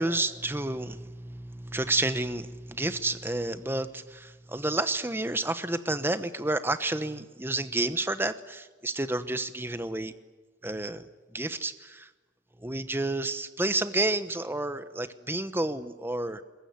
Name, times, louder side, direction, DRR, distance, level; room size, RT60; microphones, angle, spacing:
voice 1, 0.0-10.1 10.6-11.1 11.3-12.1 12.6-16.4, right 2 dB, 10° right, 11 dB, 1.0 m, -30 dB
22.0 x 21.5 x 9.5 m, 1.2 s
head